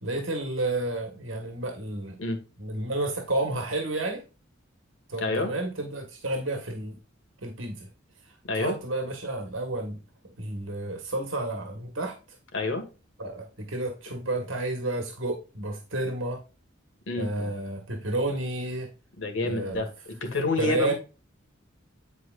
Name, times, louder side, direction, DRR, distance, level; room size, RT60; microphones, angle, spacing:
voice 1, 0.0-2.2 2.6-4.2 5.1-7.0 7.4-7.9 8.5-10.0 10.2-12.2 13.2-16.4 17.2-18.9 19.4-19.8 20.6-20.9, right 2 dB, 75° right, 4 dB, 1.5 m, -31 dB
voice 2, 5.2-5.5 8.5-8.7 12.5-12.8 17.1-17.3 19.2-19.9 20.2-20.9, left 3 dB, 70° left, 4 dB, 1.8 m, -28 dB
9.8 x 4.6 x 2.5 m, 0.31 s
head